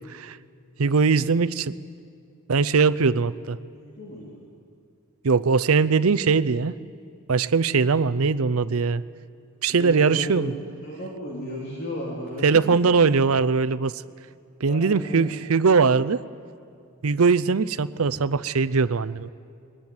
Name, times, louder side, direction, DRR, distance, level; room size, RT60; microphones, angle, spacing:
voice 1, 0.8-1.7 2.5-3.6 5.2-6.7 7.3-9.0 9.6-10.5 12.4-14.0 14.6-16.2 17.0-19.3, right 5 dB, 85° right, 15 dB, 0.6 m, -21 dB
voice 2, 3.7-4.4 9.7-12.5 14.7-15.3, equal, 50° left, -4 dB, 3.3 m, -34 dB
22.0 x 19.0 x 9.7 m, 2.3 s
head